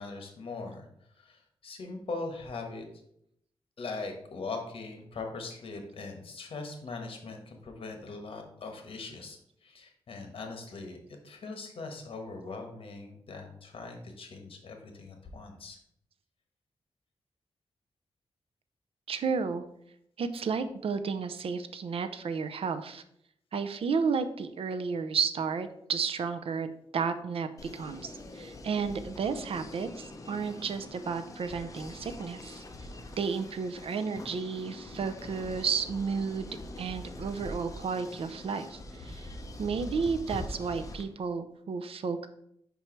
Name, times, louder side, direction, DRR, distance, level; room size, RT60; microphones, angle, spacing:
voice 1, 0.0-2.8 3.8-11.0 11.2-15.8, left 3 dB, 65° left, 4 dB, 1.2 m, -41 dB
voice 2, 19.1-19.6 20.2-23.0 23.5-26.7 26.9-27.5 27.7-32.6 33.2-36.5 36.8-39.3 39.6-42.3, right 5 dB, 70° right, 10 dB, 0.5 m, -32 dB
sound 1, 27.6-41.0, left 1 dB, 35° left, 0.7 m, -44 dB
5.3 x 4.6 x 4.4 m, 0.72 s
wide cardioid pair, 130°, 10 cm